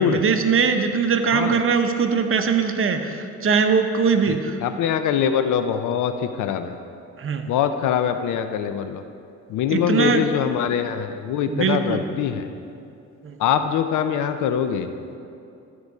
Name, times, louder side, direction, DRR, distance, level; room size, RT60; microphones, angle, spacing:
voice 1, 0.0-4.6 7.2-7.5 9.7-10.3 11.5-12.0 13.2-13.4, right 5 dB, 45° right, 6 dB, 0.8 m, -21 dB
voice 2, 4.6-6.7 7.4-9.0 9.5-12.5 13.4-14.9, left 8 dB, 80° left, 9 dB, 0.6 m, -23 dB
13.5 x 4.8 x 5.3 m, 2.6 s
cardioid pair, 90°, 30 cm